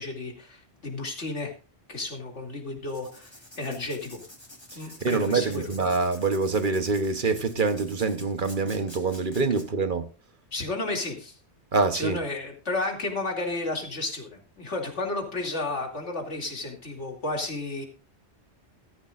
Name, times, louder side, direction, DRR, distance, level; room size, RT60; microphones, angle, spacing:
voice 1, 0.0-1.5 1.9-4.2 4.8-5.7 10.5-11.4 11.9-17.8, left 2 dB, 85° left, 2.9 m, -32 dB
Writing, 2.8-9.6, left 1 dB, 20° left, 2.9 m, -48 dB
voice 2, 4.7-10.1 11.7-12.2, right 4 dB, 50° right, 1.1 m, -25 dB
14.5 x 13.5 x 2.5 m
omnidirectional pair, 1.2 m